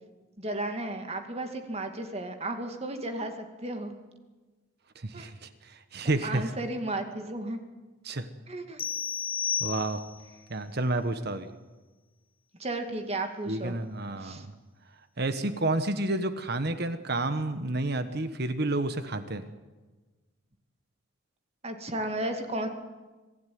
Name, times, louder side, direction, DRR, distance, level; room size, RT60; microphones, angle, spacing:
voice 1, 0.4-3.3 3.6-4.0 5.1-5.3 6.2-7.6 8.5-8.9 12.6-13.7 14.2-14.4 21.6-22.7, right 1 dB, 30° right, 6 dB, 2.3 m, -34 dB
voice 2, 5.0-5.3 5.7-6.5 8.0-8.3 9.6-10.0 10.5-11.5 13.5-14.5 15.2-19.4, right 2 dB, 55° right, 10 dB, 1.3 m, -30 dB
sound 1, 8.8-10.3, left 7 dB, 30° left, 1.0 m, -32 dB
26.5 x 16.0 x 9.5 m, 1.2 s
head